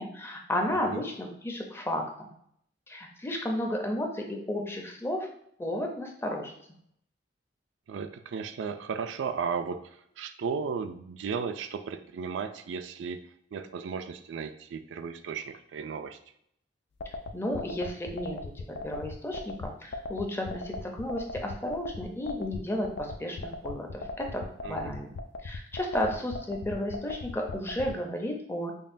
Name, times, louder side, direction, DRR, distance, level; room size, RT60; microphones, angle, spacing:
voice 1, 0.0-2.3 2.9-5.3 5.6-6.5 17.3-25.1 25.4-28.7, left 1 dB, 15° left, 2 dB, 0.5 m, -33 dB
voice 2, 7.9-13.2 13.5-16.2 24.6-24.9, right 6 dB, 90° right, 9 dB, 0.3 m, -35 dB
sound 1, 17.0-27.9, left 2 dB, 70° left, 0.3 m, -37 dB
5.3 x 2.2 x 2.5 m, 0.70 s
head